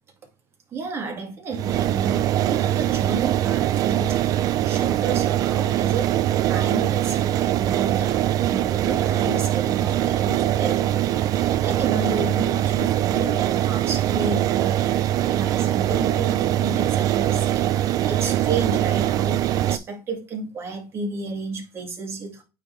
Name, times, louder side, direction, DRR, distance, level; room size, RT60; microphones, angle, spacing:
voice 1, 0.7-4.2 4.6-22.4, right 3 dB, 35° right, 2.1 m, -32 dB
sound 1, 1.5-19.8, right 12 dB, 55° right, 0.4 m, -22 dB
8.8 x 3.4 x 3.2 m
cardioid pair, 110°, 7 cm